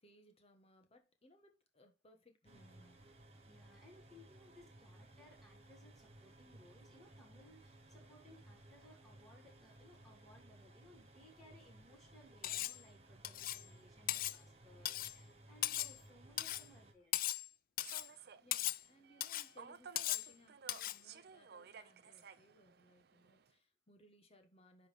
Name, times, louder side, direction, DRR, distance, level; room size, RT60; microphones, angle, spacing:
voice 1, 0.0-3.0 18.4-24.9, left 1 dB, 35° left, 1.4 m, -66 dB
sound 1, 2.4-16.9, right 1 dB, 35° right, 1.4 m, -60 dB
voice 2, 3.4-17.1, left 1 dB, ahead, 4.0 m, -63 dB
Cutlery silverware, 12.4-12.8 13.2-13.6 14.1-14.4 14.8-15.2 15.6-16.0 16.4-16.7 17.1-17.5 17.8-18.1 18.5-18.8 19.2-19.5 20.0-20.3 20.7-21.0, left 14 dB, 50° left, 0.3 m, -38 dB
Human voice / Subway metro underground, 17.8-23.5, right 6 dB, 60° right, 0.6 m, -57 dB
10.5 x 3.8 x 3.5 m
head